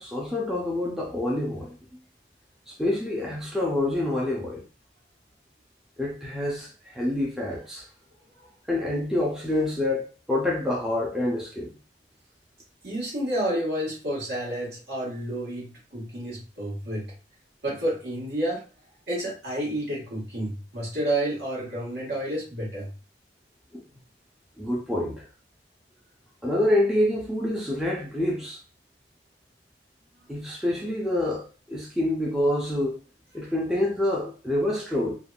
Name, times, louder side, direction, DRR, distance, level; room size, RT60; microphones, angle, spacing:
voice 1, 0.0-1.8 2.7-4.6 6.0-7.9 8.7-11.7 23.7-23.8 24.6-25.3 26.4-28.6 30.3-33.0 33.3-35.2, left 1 dB, 5° right, 0.4 m, -27 dB
voice 2, 12.8-17.1 17.6-18.6 19.1-22.9, right 1 dB, 60° right, 1.4 m, -30 dB
3.3 x 2.2 x 2.3 m
head